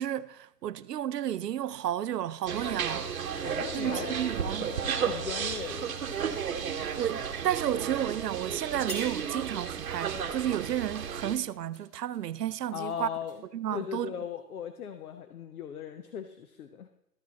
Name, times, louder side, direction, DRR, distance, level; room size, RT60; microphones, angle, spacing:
voice 1, 0.0-3.1 3.7-4.7 5.0-5.1 7.0-13.1 13.5-14.1, right 11 dB, 80° right, 0.6 m, -32 dB
sound 1, 2.5-11.3, right 7 dB, 60° right, 1.0 m, -33 dB
sound 2, 2.9-3.0 3.7-3.8 4.0-6.5, left 4 dB, 45° left, 1.1 m, -48 dB
voice 2, 3.4-4.2 4.6-4.7 5.0-6.4 12.7-13.4 13.7-16.9, left 8 dB, 65° left, 0.8 m, -38 dB
sound 3, 6.1-7.3 7.7-8.0 8.5-8.6 8.9-14.2 14.7-14.9, equal, 25° left, 1.9 m, -50 dB
13.0 x 6.2 x 4.1 m
hypercardioid pair, 155°, 48 cm